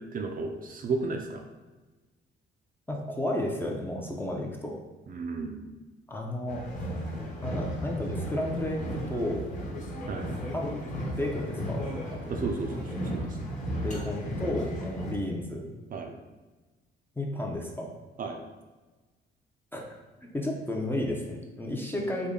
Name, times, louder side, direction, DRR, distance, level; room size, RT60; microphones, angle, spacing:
voice 1, 0.1-1.4 5.1-5.6 10.1-10.3 12.3-13.5 15.9-16.1 18.2-18.4, right 4 dB, 45° right, 3 dB, 0.4 m, -33 dB
voice 2, 2.9-4.7 6.1-6.6 7.4-9.4 10.5-11.9 12.2-12.3 13.8-15.7 17.2-17.9 19.7-19.8 20.3-22.3, left 1 dB, 10° left, -1 dB, 0.5 m, -32 dB
sound 1, 6.5-15.1, equal, 40° left, 1.1 m, -34 dB
3.5 x 2.1 x 3.7 m, 1.2 s
cardioid pair, 90°, 20 cm